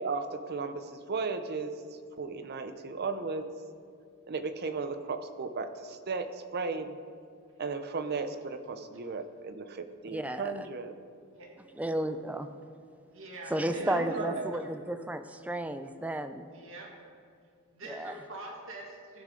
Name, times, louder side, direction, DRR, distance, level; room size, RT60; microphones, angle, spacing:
voice 1, 0.0-1.7 2.2-3.5 4.3-7.0 7.6-10.9 13.8-14.5, right 4 dB, 50° right, 9 dB, 0.6 m, -35 dB
voice 2, 10.1-10.5 11.7-12.5 13.5-16.5 17.8-18.1, right 1 dB, 5° right, 9 dB, 0.4 m, -33 dB
voice 3, 13.1-14.3 16.5-16.9 17.7-19.2, right 2 dB, 65° right, -1 dB, 1.6 m, -44 dB
15.5 x 6.4 x 3.8 m, 2.2 s
head